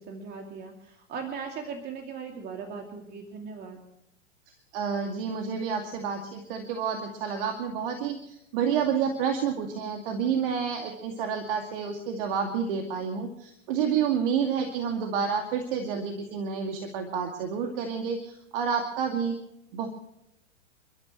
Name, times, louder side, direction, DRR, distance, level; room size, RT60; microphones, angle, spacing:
voice 1, 0.0-3.8, right 5 dB, 25° right, 2 dB, 2.7 m, -39 dB
voice 2, 4.7-19.4 19.7-19.9, right 7 dB, 45° right, 4 dB, 2.5 m, -29 dB
29.5 x 13.5 x 3.2 m, 0.79 s
figure-of-eight pair, 105°, 37 cm